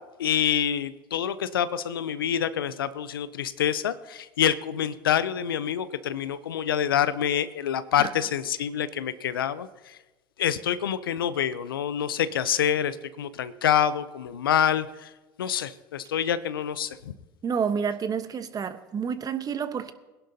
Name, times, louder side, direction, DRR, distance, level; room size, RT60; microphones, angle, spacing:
voice 1, 0.2-10.0 10.4-15.1 15.4-17.1, left 9 dB, 85° left, 0.6 m, -26 dB
voice 2, 17.4-19.9, right 6 dB, 35° right, 1.0 m, -29 dB
21.5 x 11.0 x 2.7 m
hypercardioid pair, 75°, 11 cm